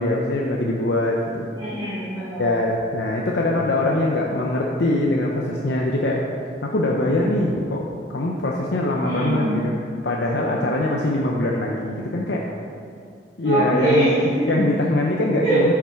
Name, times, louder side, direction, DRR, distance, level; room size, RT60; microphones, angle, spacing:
voice 1, 0.0-1.5 2.4-6.2 6.6-7.8 8.1-9.7 10.0-12.4 13.4-14.1 14.5-15.7, left 1 dB, 80° left, -2 dB, 0.8 m, -22 dB
voice 2, 1.6-2.5 9.0-9.6 13.4-14.5 15.4-15.7, right 2 dB, 25° right, -12 dB, 2.2 m, -22 dB
11.0 x 5.9 x 4.5 m, 2.3 s
head